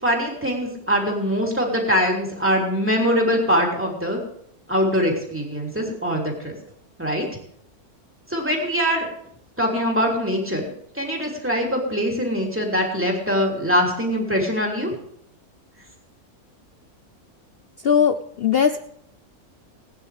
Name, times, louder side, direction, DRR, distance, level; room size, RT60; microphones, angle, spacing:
voice 1, 0.0-4.2 4.7-6.5 7.0-7.3 8.3-9.1 9.6-10.6 10.9-15.0, equal, 10° right, -1 dB, 3.2 m, -22 dB
voice 2, 17.8-18.8, left 7 dB, 55° left, 9 dB, 0.7 m, -19 dB
20.0 x 9.8 x 3.4 m, 0.68 s
omnidirectional pair, 1.6 m